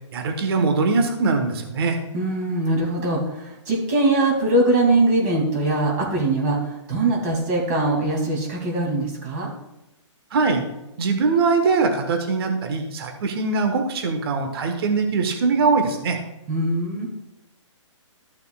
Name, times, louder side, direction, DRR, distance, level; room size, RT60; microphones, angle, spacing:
voice 1, 0.1-2.0 10.3-10.6 11.0-16.2, right 4 dB, 50° right, 5 dB, 1.4 m, -22 dB
voice 2, 2.1-9.5 16.5-17.1, right 2 dB, 35° right, -2 dB, 2.7 m, -22 dB
14.0 x 6.6 x 2.4 m, 0.92 s
hypercardioid pair, 155°, 16 cm